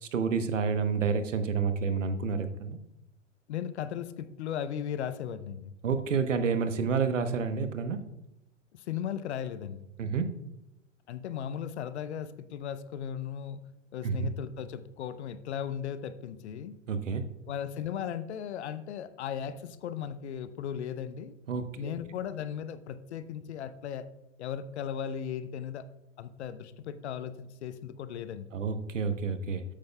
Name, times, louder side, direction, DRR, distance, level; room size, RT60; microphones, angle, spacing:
voice 1, 0.0-2.8 5.8-8.0 10.0-10.3 14.0-14.3 16.9-17.2 21.5-21.9 28.5-29.6, right 5 dB, 75° right, 9 dB, 1.0 m, -29 dB
voice 2, 3.5-5.7 8.7-9.9 11.1-13.6 13.9-16.8 17.5-21.3 21.8-24.0 24.4-25.8 26.2-28.5, left 9 dB, 60° left, 13 dB, 0.8 m, -36 dB
13.0 x 8.7 x 2.3 m, 0.89 s
figure-of-eight pair, 100°, 38 cm